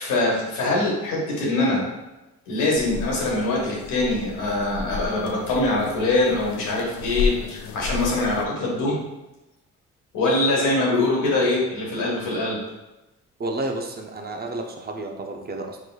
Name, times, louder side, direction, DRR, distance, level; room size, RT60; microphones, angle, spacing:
voice 1, 0.0-1.8 2.5-9.0 10.1-12.6, left 2 dB, 90° left, -4 dB, 1.5 m, -23 dB
sound 1, 2.7-8.5, left 5 dB, 70° left, 0.4 m, -32 dB
voice 2, 13.4-15.8, right 2 dB, 30° right, 3 dB, 0.6 m, -31 dB
4.8 x 3.8 x 2.3 m, 1.0 s
cardioid pair, 90°, 30 cm